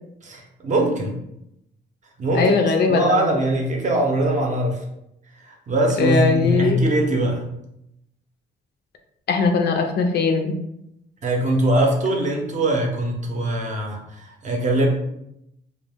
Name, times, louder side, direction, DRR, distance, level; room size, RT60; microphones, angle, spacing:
voice 1, 0.2-1.1 2.2-2.6 2.9-4.8 5.4-7.5 11.2-14.9, right 1 dB, 40° right, 1 dB, 0.6 m, -22 dB
voice 2, 2.3-3.3 6.0-6.8 9.3-10.6, left 4 dB, 55° left, 4 dB, 0.4 m, -20 dB
2.2 x 2.1 x 3.3 m, 0.81 s
cardioid pair, 90°, 20 cm